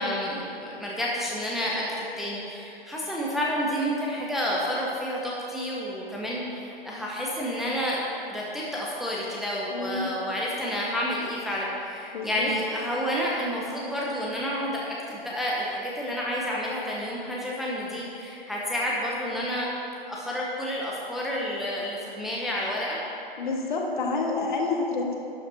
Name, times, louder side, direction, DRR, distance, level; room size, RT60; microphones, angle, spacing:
voice 1, 0.0-8.0 8.3-19.7 20.1-23.0, equal, ahead, -5 dB, 0.7 m, -30 dB
voice 2, 9.7-10.1 12.1-12.5 23.4-25.2, left 3 dB, 55° left, 0 dB, 1.7 m, -28 dB
12.0 x 6.8 x 4.4 m, 2.9 s
figure-of-eight pair, 120°, 30 cm